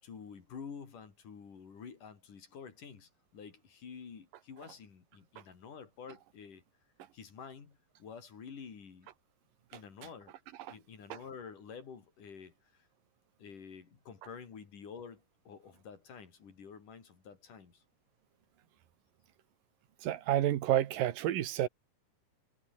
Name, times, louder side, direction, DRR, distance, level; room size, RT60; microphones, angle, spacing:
voice 1, 0.0-6.6 7.1-9.1 9.7-10.3 10.7-12.9 13.4-17.8, left 6 dB, 70° left, 5.2 m, -49 dB
voice 2, 20.0-21.7, right 12 dB, 90° right, 3.1 m, -29 dB
omnidirectional pair, 3.9 m